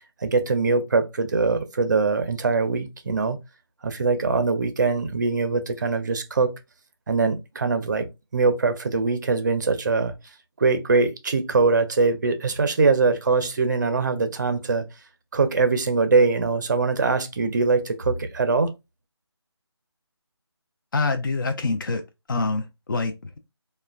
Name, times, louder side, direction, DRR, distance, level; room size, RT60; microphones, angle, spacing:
voice 1, 0.2-3.4 3.8-6.5 7.1-8.1 8.3-10.1 10.6-14.9 15.3-18.7, right 4 dB, 45° right, 0.5 m, -22 dB
voice 2, 20.9-22.0 22.3-23.4, left 3 dB, 50° left, 0.4 m, -26 dB
2.9 x 2.1 x 2.3 m
figure-of-eight pair, 155°, 14 cm